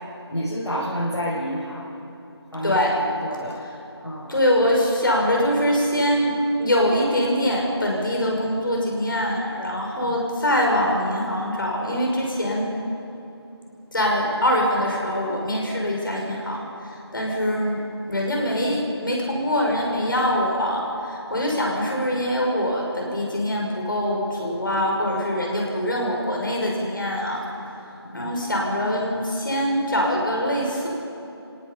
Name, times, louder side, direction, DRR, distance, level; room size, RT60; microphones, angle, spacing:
voice 1, 0.0-2.0 2.5-3.6 4.0-4.3 10.0-10.2 28.0-28.3, equal, 80° left, -7 dB, 6.8 m, -30 dB
voice 2, 4.3-12.7 13.9-27.4 28.1-30.9, equal, 50° left, -1 dB, 6.1 m, -23 dB
30.0 x 18.0 x 5.6 m, 2.8 s
figure-of-eight pair, 170°, 14 cm